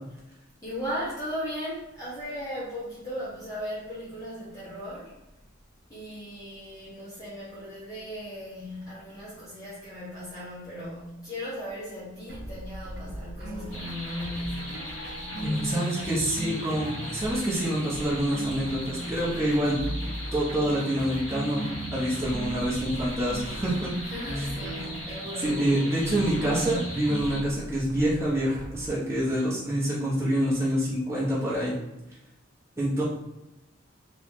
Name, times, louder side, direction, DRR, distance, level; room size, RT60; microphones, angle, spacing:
voice 1, 0.6-5.1 5.9-14.8 24.0-25.6, equal, 20° left, -10 dB, 1.0 m, -37 dB
sound 1, 12.3-28.9, right 1 dB, 60° right, 0.6 m, -41 dB
sound 2, 13.4-27.4, right 1 dB, 40° right, 1.2 m, -38 dB
sound 3, 13.7-27.4, left 1 dB, 80° left, 1.0 m, -40 dB
voice 2, 15.4-19.8 20.3-21.6 21.9-23.9 24.4-24.5 25.4-31.7 32.8-33.0, right 1 dB, 15° right, -7 dB, 0.6 m, -27 dB
3.0 x 2.9 x 3.4 m, 0.94 s
head